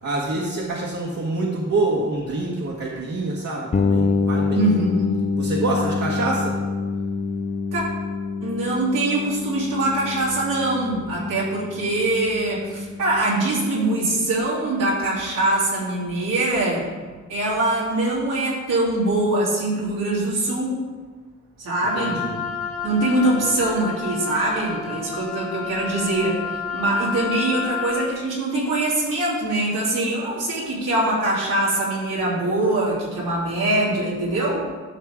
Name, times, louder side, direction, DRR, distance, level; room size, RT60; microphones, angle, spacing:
voice 1, 0.0-4.7 5.4-6.6 21.9-22.4, right 2 dB, 60° right, -4 dB, 1.6 m, -26 dB
sound 1, 3.7-13.4, left 4 dB, 25° left, 0.5 m, -26 dB
voice 2, 4.5-5.1 5.8-5.9 7.7-7.8 8.4-16.9 17.3-20.8 21.6-22.2 22.8-26.4 26.7-34.6, right 2 dB, 85° right, -7 dB, 3.1 m, -23 dB
Wind instrument woodwind instrument, 21.8-28.1, left 6 dB, 45° left, 2.3 m, -30 dB
12.0 x 6.4 x 3.7 m, 1.4 s
cardioid pair, 75°, 31 cm